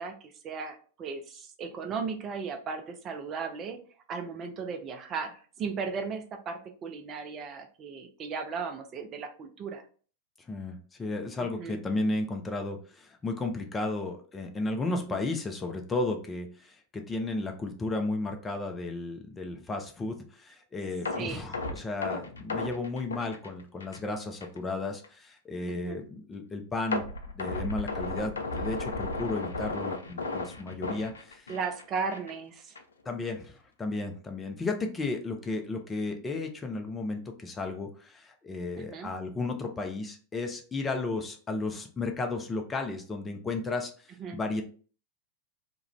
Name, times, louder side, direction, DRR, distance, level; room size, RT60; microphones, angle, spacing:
voice 1, 0.0-3.8 4.1-9.8 11.4-11.8 14.9-15.2 21.1-21.5 25.7-26.0 31.5-32.8 38.7-39.1 44.2-44.4, right 5 dB, 35° right, 6 dB, 0.4 m, -36 dB
voice 2, 10.5-27.0 27.4-31.4 33.1-43.9 44.3-44.6, left 2 dB, 20° left, 4 dB, 0.5 m, -34 dB
sound 1, 21.1-24.1 24.4-24.6 25.0-25.1 26.9-31.8 32.1-32.3 32.8-32.9, left 3 dB, 80° left, 0.3 m, -34 dB
2.3 x 2.2 x 3.0 m, 0.41 s
figure-of-eight pair, 90°, 0 cm